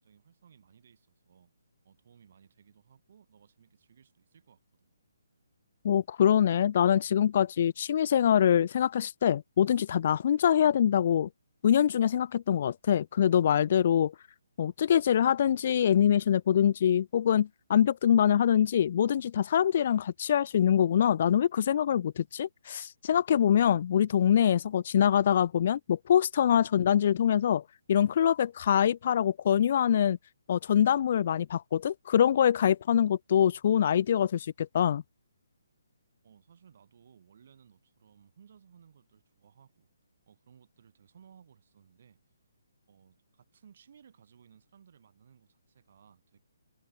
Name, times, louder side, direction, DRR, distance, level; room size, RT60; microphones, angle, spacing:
voice 1, 0.0-1.5 1.9-4.9 26.6-26.7 36.2-39.9 40.3-42.2 42.9-46.4, right 7 dB, 55° right, 6.8 m, -60 dB
voice 2, 5.8-11.3 11.6-14.1 14.6-27.6 27.9-30.2 30.5-35.0, left 9 dB, 45° left, 0.3 m, -24 dB
hypercardioid pair, 155°, 0 cm